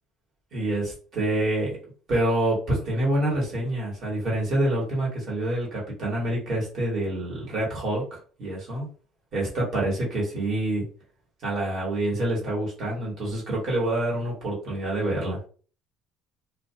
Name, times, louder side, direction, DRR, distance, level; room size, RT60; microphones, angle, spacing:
voice 1, 0.5-1.8 2.1-8.9 9.3-10.8 11.4-15.4, right 1 dB, 40° right, -4 dB, 1.4 m, -27 dB
2.4 x 2.2 x 2.8 m, 0.40 s
cardioid pair, 165°, 0 cm